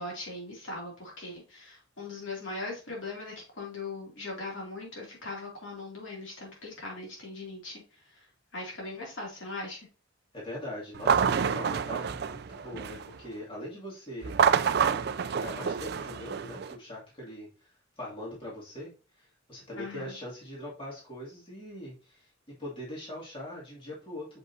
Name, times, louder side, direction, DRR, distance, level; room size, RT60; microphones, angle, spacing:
voice 1, 0.0-8.3 8.5-9.9 19.8-20.1, left 2 dB, 65° left, -2 dB, 2.6 m, -40 dB
voice 2, 10.3-14.4 15.3-17.5 18.0-24.3, left 1 dB, 25° left, -5 dB, 2.4 m, -42 dB
sound 1, 10.9-13.2 14.2-16.7, right 7 dB, 50° right, 0.4 m, -27 dB
6.5 x 5.3 x 2.7 m, 0.33 s
head